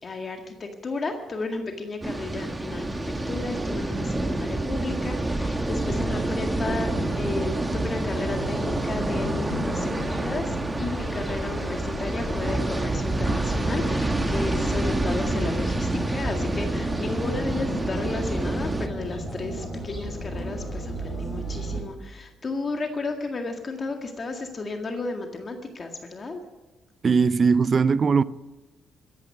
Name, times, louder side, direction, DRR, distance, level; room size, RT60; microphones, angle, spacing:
voice 1, 0.0-3.0 3.3-26.4, left 3 dB, 40° left, 1.9 m, -33 dB
sound 1, 2.0-18.9, right 2 dB, 15° right, 1.2 m, -28 dB
sound 2, 5.8-21.8, right 1 dB, 10° left, 5.9 m, -34 dB
voice 2, 27.0-28.2, right 5 dB, 40° right, 0.5 m, -19 dB
14.5 x 10.5 x 9.5 m
cardioid pair, 90°, 0 cm